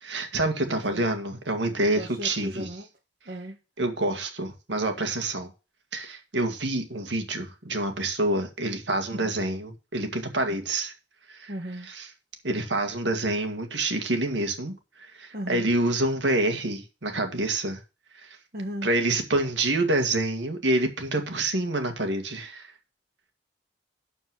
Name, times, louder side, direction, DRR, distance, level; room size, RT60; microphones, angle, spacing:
voice 1, 0.0-2.7 3.8-5.5 5.9-10.9 11.3-11.5 12.4-14.7 15.0-17.8 18.2-18.3 18.8-22.7, right 2 dB, 85° right, 1.9 m, -27 dB
voice 2, 0.6-1.0 1.9-2.9 3.2-3.6 9.1-9.3 10.5-10.6 11.5-11.9 15.3-15.7 18.5-18.9, equal, 55° right, 1.5 m, -36 dB
12.0 x 4.6 x 6.1 m
head